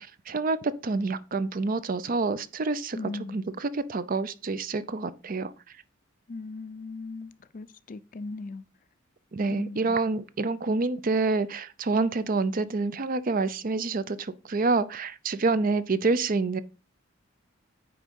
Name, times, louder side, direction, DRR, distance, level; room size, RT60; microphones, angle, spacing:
voice 1, 0.0-5.5 9.3-16.6, right 3 dB, 45° right, 0.5 m, -27 dB
voice 2, 2.9-3.4 6.3-8.6 9.5-10.0, left 3 dB, 40° left, 0.5 m, -38 dB
9.4 x 3.6 x 5.4 m
head